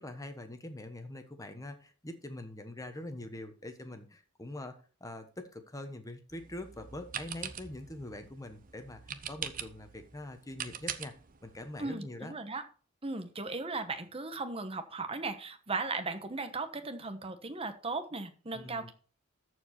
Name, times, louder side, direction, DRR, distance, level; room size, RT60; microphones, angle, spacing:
voice 1, 0.0-11.1 11.4-12.3 18.5-18.9, left 1 dB, 15° left, 7 dB, 1.2 m, -44 dB
sound 1, 6.3-11.9, right 8 dB, 45° right, 0.7 m, -43 dB
voice 2, 11.8-12.6 13.0-18.9, right 3 dB, 30° right, 8 dB, 1.1 m, -37 dB
13.5 x 4.8 x 4.3 m, 0.39 s
head